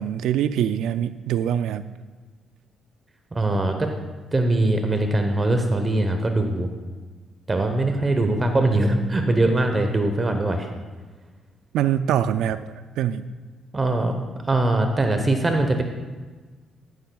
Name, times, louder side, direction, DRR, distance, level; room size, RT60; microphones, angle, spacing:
voice 1, 0.0-1.9 11.7-13.2, right 10 dB, 85° right, 13 dB, 0.3 m, -24 dB
voice 2, 3.3-3.9 4.3-6.7 7.5-10.7 13.7-14.2 14.4-15.8, right 2 dB, 25° right, 5 dB, 0.9 m, -21 dB
13.0 x 11.0 x 2.3 m, 1.3 s
cardioid pair, 90°, 0 cm